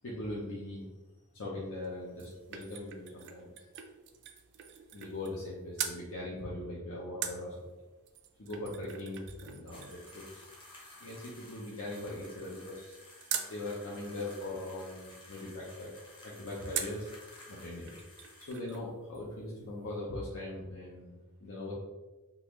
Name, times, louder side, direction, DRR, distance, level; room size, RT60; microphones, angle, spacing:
voice 1, 0.0-0.9 1.3-3.5 4.9-7.7 8.4-10.4 11.0-13.0 13.3-15.9 16.2-17.1 17.5-17.9 18.4-21.7, left 1 dB, 65° left, -5 dB, 0.7 m, -40 dB
sound 1, 1.8-5.5 5.8-6.0 7.2-13.6 16.7-17.1 17.6-17.7 17.9-18.9 19.1-19.2, right 9 dB, 55° right, 0.3 m, -43 dB
sound 2, 9.7-18.6, left 1 dB, 25° left, 0.8 m, -54 dB
3.7 x 2.4 x 3.0 m, 1.2 s
head